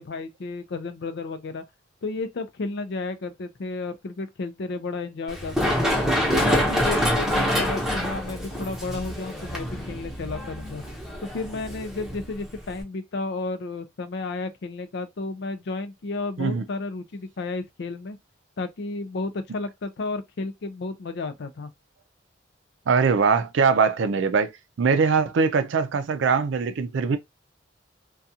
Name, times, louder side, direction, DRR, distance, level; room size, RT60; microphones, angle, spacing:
voice 1, 0.0-1.6 2.0-6.0 6.3-10.8 11.2-18.2 18.6-21.7, left 3 dB, 60° left, 0.4 m, -32 dB
Run, 5.3-12.8, equal, ahead, 0.8 m, -26 dB
voice 2, 22.9-24.5 24.8-27.2, right 5 dB, 70° right, 0.4 m, -21 dB
2.4 x 2.2 x 2.7 m
head